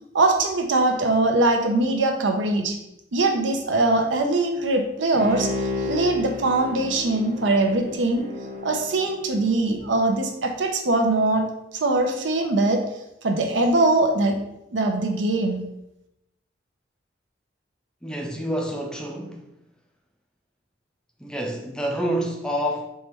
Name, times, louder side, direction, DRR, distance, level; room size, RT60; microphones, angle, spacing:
voice 1, 0.1-2.8 3.1-8.3 8.6-11.5 11.7-12.8 13.2-14.4 14.7-15.6, right 2 dB, 80° right, 0.7 m, -22 dB
Bowed string instrument, 5.1-9.7 10.1-10.2, left 2 dB, 50° right, 0.8 m, -32 dB
voice 2, 18.0-19.5 21.2-22.9, equal, 5° left, 0.4 m, -28 dB
4.4 x 3.1 x 3.4 m
head